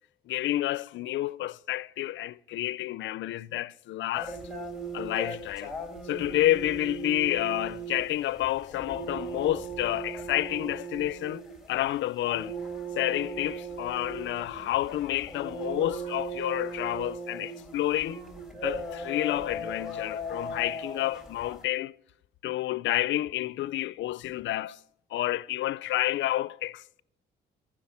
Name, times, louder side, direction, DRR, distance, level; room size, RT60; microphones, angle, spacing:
voice 1, 0.3-4.4 4.9-5.7 6.1-12.6 13.0-18.2 18.6-21.9 22.4-24.8 25.1-27.0, left 14 dB, 70° left, 0.5 m, -29 dB
sound 1, 4.1-21.6, right 2 dB, 5° right, 3.8 m, -38 dB
15.0 x 6.0 x 9.6 m
cardioid pair, 90°, 20 cm